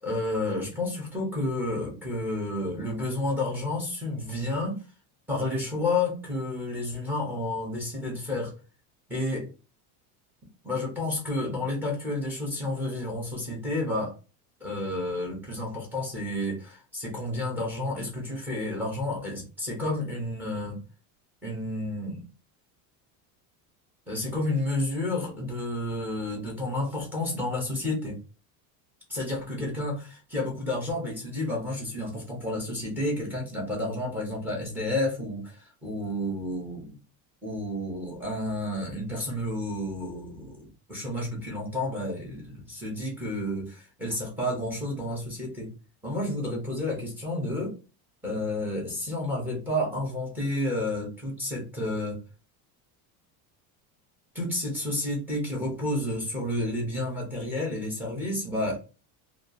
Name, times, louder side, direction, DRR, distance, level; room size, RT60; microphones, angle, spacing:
voice 1, 0.0-4.8 5.3-8.5 9.1-9.5 10.6-14.1 14.6-20.8 21.4-22.2 24.1-28.2 29.1-37.0 37.4-45.7 46.0-47.7 48.2-52.2 54.3-58.8, left 1 dB, 5° right, -1 dB, 0.4 m, -31 dB
2.7 x 2.3 x 2.4 m, 0.33 s
cardioid pair, 175°, 44 cm